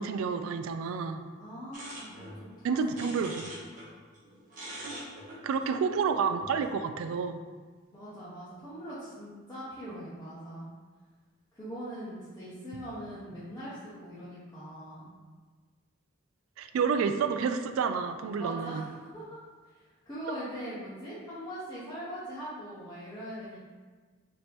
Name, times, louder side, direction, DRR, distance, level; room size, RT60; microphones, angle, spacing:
voice 1, 0.0-1.2 2.6-3.5 5.4-7.4 16.6-18.9, right 5 dB, 85° right, 9 dB, 0.3 m, -29 dB
voice 2, 1.4-2.3 2.6-3.0 5.8-6.0 7.9-10.7 11.5-15.1 18.4-19.4 19.7-23.6, equal, 15° left, -12 dB, 0.8 m, -41 dB
sound 1, 1.7-3.9 4.1-6.7, right 1 dB, 40° right, 1.0 m, -44 dB
3.3 x 2.9 x 4.2 m, 1.4 s
head